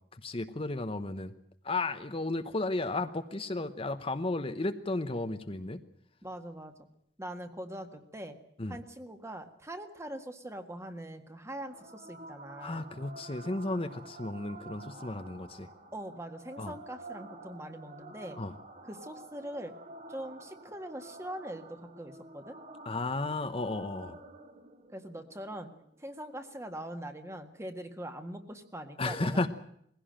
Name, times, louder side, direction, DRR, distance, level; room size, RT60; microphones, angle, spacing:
voice 1, 0.1-1.3 1.6-5.8 8.6-8.8 12.6-15.7 16.6-16.7 18.4-18.5 22.8-24.2 29.0-29.5, left 2 dB, 35° left, 8 dB, 1.0 m, -33 dB
voice 2, 6.2-6.9 7.2-8.4 8.7-12.9 15.9-18.4 18.8-19.7 20.1-22.6 24.9-25.7 26.0-29.5, right 1 dB, 15° right, 7 dB, 1.8 m, -42 dB
sound 1, 11.7-26.7, right 2 dB, 45° right, 2.3 m, -50 dB
21.0 x 16.5 x 8.9 m, 0.70 s
head